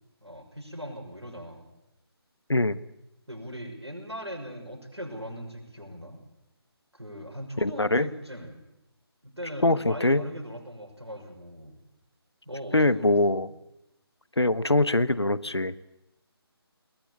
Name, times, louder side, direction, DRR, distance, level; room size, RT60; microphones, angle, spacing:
voice 1, 0.2-1.7 3.3-6.2 6.9-8.6 9.2-11.8 12.4-13.5, equal, 90° right, 2 dB, 6.4 m, -40 dB
voice 2, 7.6-8.1 9.6-10.2 12.7-13.5 14.4-15.7, left 2 dB, 85° left, 17 dB, 1.1 m, -23 dB
22.5 x 18.0 x 8.6 m, 0.88 s
figure-of-eight pair, 155°, 14 cm